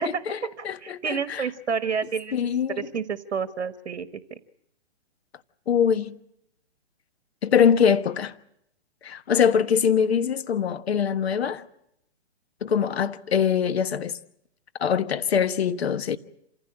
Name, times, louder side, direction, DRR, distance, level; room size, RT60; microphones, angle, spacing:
voice 1, 0.0-0.4 0.6-1.4 2.3-2.8 5.7-6.1 7.4-8.3 9.0-11.6 12.6-14.2 14.8-16.2, left 7 dB, 65° left, 1.4 m, -23 dB
voice 2, 0.6-2.4 2.8-4.4, right 6 dB, 80° right, 1.4 m, -29 dB
27.5 x 15.5 x 8.7 m
hypercardioid pair, 145°, 33 cm